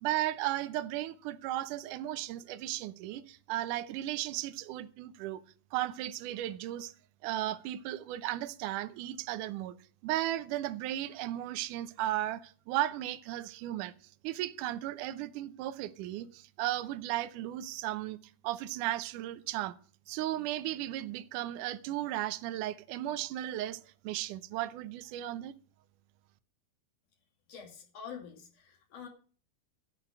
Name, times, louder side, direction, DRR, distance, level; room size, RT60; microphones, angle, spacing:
voice 1, 0.0-5.4 5.7-6.9 7.2-9.8 10.0-13.9 14.2-18.2 18.4-19.8 20.1-25.5, right 14 dB, 80° right, 1.9 m, -35 dB
voice 2, 27.5-29.1, left 7 dB, 45° left, 3.3 m, -46 dB
13.0 x 6.2 x 8.7 m
omnidirectional pair, 4.5 m